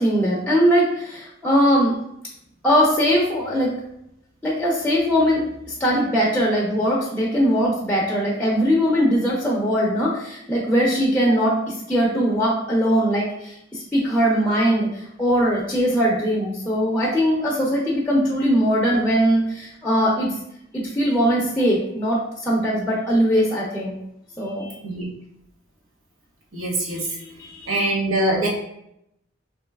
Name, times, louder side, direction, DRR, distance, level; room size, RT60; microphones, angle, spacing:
voice 1, 0.0-2.0 2.6-3.7 4.4-20.3 20.7-24.0 24.4-24.8 27.2-27.7, equal, 5° left, -4 dB, 0.6 m, -21 dB
voice 2, 26.5-27.2 27.7-28.5, right 1 dB, 80° right, -3 dB, 1.1 m, -23 dB
3.1 x 2.7 x 3.4 m, 0.77 s
head